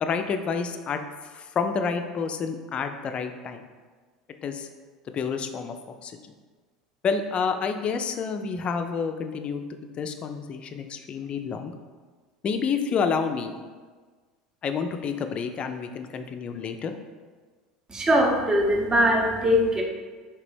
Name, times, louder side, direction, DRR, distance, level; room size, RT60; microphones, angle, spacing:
voice 1, 0.0-3.6 4.4-4.7 5.1-5.8 6.0-6.2 7.0-11.7 12.4-13.6 14.6-17.0, left 5 dB, 35° left, 7 dB, 0.3 m, -29 dB
voice 2, 17.9-19.8, equal, 20° right, 0 dB, 0.6 m, -21 dB
3.2 x 2.9 x 3.1 m, 1.4 s
figure-of-eight pair, 75°, 3 cm